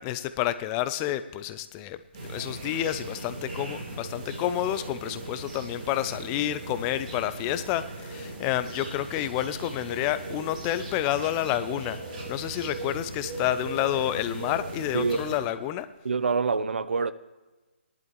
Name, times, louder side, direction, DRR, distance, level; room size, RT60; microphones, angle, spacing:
voice 1, 0.0-2.0 2.3-12.0 12.3-15.9, left 12 dB, 20° left, 0.4 m, -29 dB
sound 1, 2.1-15.4, right 2 dB, 40° right, 3.6 m, -38 dB
voice 2, 16.0-17.1, right 4 dB, 70° right, 0.6 m, -26 dB
18.0 x 11.0 x 3.1 m
hypercardioid pair, 155°, 6 cm